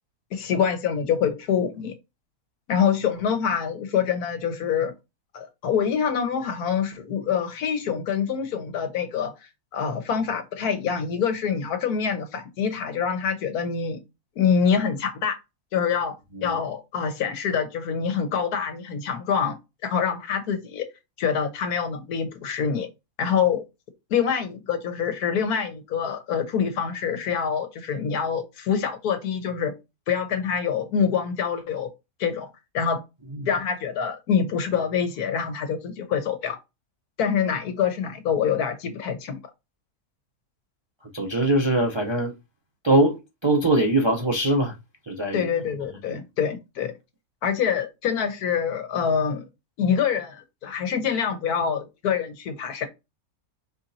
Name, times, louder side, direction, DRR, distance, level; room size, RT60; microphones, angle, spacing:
voice 1, 0.3-1.9 2.7-4.9 5.3-9.3 9.7-14.0 14.4-15.4 15.7-16.1 16.4-19.6 19.8-20.9 21.2-22.9 23.2-23.6 24.1-29.7 30.1-31.9 32.2-32.5 32.7-33.0 33.5-36.6 37.2-39.4 45.3-46.9 47.4-49.4 49.8-52.9, left 7 dB, 90° left, 1.5 m, -25 dB
voice 2, 41.0-42.3 42.8-44.8 45.0-45.5 46.1-46.2, right 1 dB, 40° right, 0.4 m, -22 dB
4.4 x 4.2 x 2.6 m
omnidirectional pair, 1.6 m